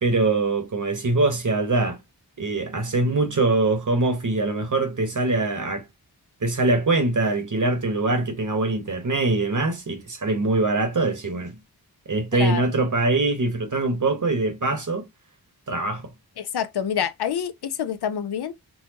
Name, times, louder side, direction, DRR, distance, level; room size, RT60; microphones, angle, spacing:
voice 1, 0.0-2.0 2.4-5.8 6.4-11.6 12.1-15.0 15.7-16.0, right 2 dB, 50° right, 1.1 m, -23 dB
voice 2, 12.3-12.6 16.4-18.5, left 8 dB, 80° left, 0.5 m, -27 dB
4.1 x 2.2 x 2.8 m
wide cardioid pair, 55°, 39 cm